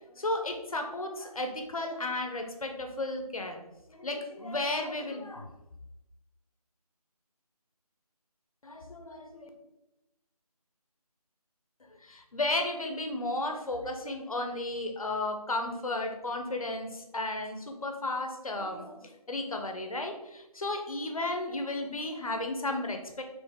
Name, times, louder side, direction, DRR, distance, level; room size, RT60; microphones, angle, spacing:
voice 1, 0.1-3.6 3.9-5.5 8.6-9.5 12.0-23.2, left 2 dB, 60° left, 4 dB, 0.7 m, -34 dB
3.2 x 3.1 x 3.5 m, 0.94 s
figure-of-eight pair, 175°, 20 cm